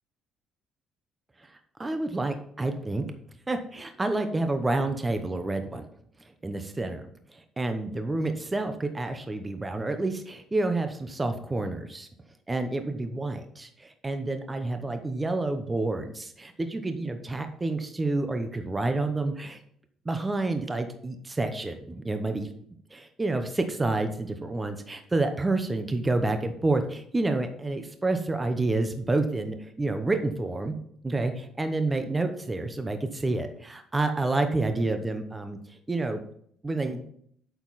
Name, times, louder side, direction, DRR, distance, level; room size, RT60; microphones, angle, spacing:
voice 1, 1.8-3.0 3.5-5.9 6.4-7.0 7.6-12.1 12.5-19.6 20.1-22.5 22.9-30.8 31.0-36.2 36.6-37.0, right 2 dB, 15° right, 7 dB, 0.8 m, -29 dB
8.5 x 6.9 x 4.1 m, 0.65 s
cardioid pair, 115°, 0 cm